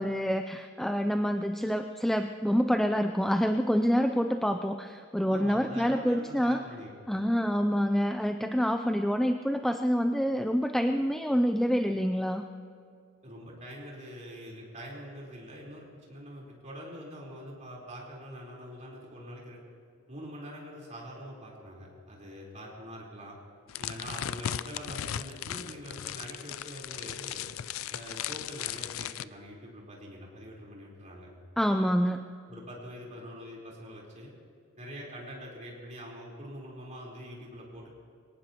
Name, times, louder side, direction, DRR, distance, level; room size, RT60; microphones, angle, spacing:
voice 1, 0.0-6.6 7.1-12.4 31.6-32.3, equal, ahead, 6 dB, 0.4 m, -27 dB
voice 2, 5.3-7.0 13.2-19.6 20.1-23.4 23.8-27.5 27.9-31.3 32.5-34.3 34.8-37.9, equal, 35° right, -4 dB, 4.1 m, -44 dB
sound 1, 23.7-29.2, left 11 dB, 70° left, 0.4 m, -37 dB
24.5 x 18.0 x 3.0 m, 2.4 s
head